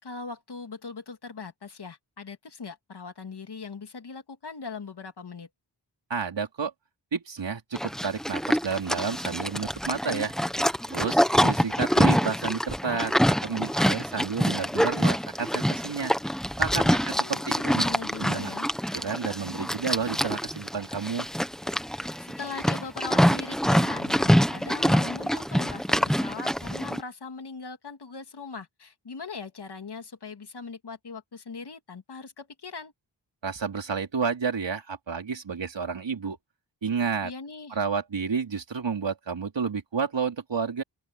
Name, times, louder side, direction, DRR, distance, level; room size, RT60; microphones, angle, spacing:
voice 1, 0.0-5.5 16.8-18.7 21.9-32.9 37.2-37.8, left 4 dB, 55° left, 2.7 m, -40 dB
voice 2, 6.1-6.7 7.1-10.3 10.9-16.1 16.6-17.8 18.2-18.5 18.9-21.3 33.4-36.4 36.8-37.3 37.7-40.8, right 5 dB, 65° right, 4.2 m, -30 dB
Livestock farm animals working animals, 7.7-27.0, equal, ahead, 1.3 m, -25 dB
open air
wide cardioid pair, 90°, 46 cm